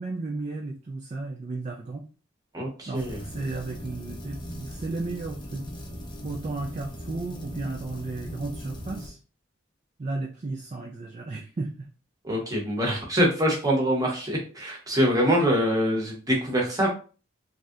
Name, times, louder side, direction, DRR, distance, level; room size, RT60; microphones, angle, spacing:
voice 1, 0.0-2.0 2.9-5.7 6.2-9.2 10.0-11.9, right 3 dB, 35° right, 1 dB, 0.3 m, -34 dB
voice 2, 2.5-3.2 12.2-16.9, equal, 20° right, -1 dB, 0.8 m, -24 dB
sound 1, 2.9-9.1, equal, 20° left, 0.6 m, -39 dB
3.2 x 2.7 x 2.4 m, 0.36 s
head